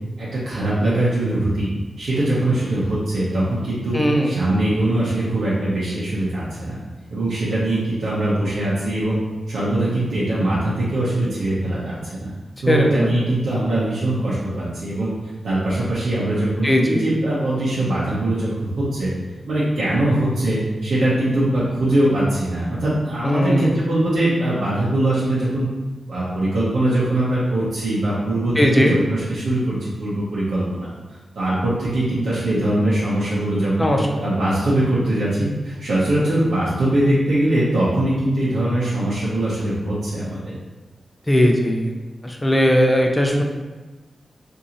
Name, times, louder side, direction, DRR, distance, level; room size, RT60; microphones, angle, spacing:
voice 1, 0.2-1.7 2.0-4.0 4.2-6.8 7.1-9.2 9.5-12.3 12.6-19.1 19.5-25.7 26.1-30.9 31.4-33.9 34.2-40.6, right 1 dB, 80° right, -9 dB, 0.8 m, -22 dB
voice 2, 3.9-4.3 12.7-13.2 16.6-17.0 23.2-23.7 28.6-28.9 33.8-34.0 41.3-41.9 42.2-43.4, equal, 10° left, 1 dB, 0.4 m, -18 dB
2.9 x 2.7 x 3.7 m, 1.2 s
wide cardioid pair, 170°, 0 cm